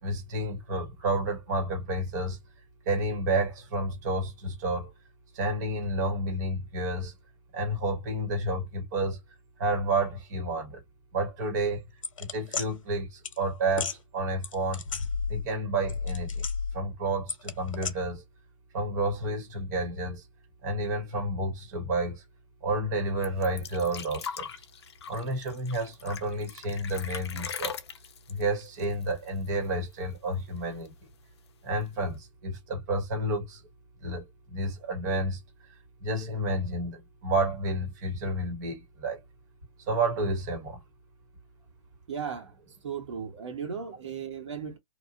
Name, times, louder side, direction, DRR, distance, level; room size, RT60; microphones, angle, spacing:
voice 1, 0.0-2.4 2.8-4.9 5.3-7.1 7.5-9.2 9.6-10.8 11.1-11.8 12.2-14.8 15.3-16.4 16.7-18.2 18.7-20.2 20.6-22.2 22.6-24.5 25.1-27.7 28.3-30.9 31.6-33.6 34.0-35.4 36.0-39.2 39.9-40.8, right 2 dB, 35° right, 1.3 m, -30 dB
sound 1, 12.0-12.7 13.2-13.4 13.7-14.0 14.4-15.5 15.8-16.8 17.3-17.9, left 5 dB, 80° left, 0.9 m, -32 dB
sound 2, 23.2-29.7 29.9-30.0 30.3-31.1 31.9-32.0, left 7 dB, 55° left, 0.8 m, -40 dB
voice 2, 42.1-42.6 42.8-44.8, right 6 dB, 65° right, 1.2 m, -36 dB
3.0 x 2.3 x 2.6 m
hypercardioid pair, 165°, 17 cm